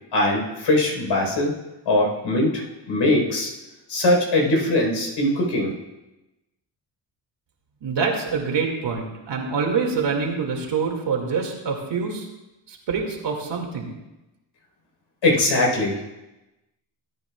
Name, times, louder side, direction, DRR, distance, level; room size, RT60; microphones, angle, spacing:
voice 1, 0.1-1.5 1.9-3.5 3.9-5.7 15.2-16.1, left 1 dB, 70° left, -1 dB, 4.4 m, -21 dB
voice 2, 7.8-12.3 12.7-13.9, right 5 dB, 60° right, 1 dB, 2.3 m, -25 dB
17.0 x 9.3 x 2.4 m, 0.99 s
cardioid pair, 75°, 48 cm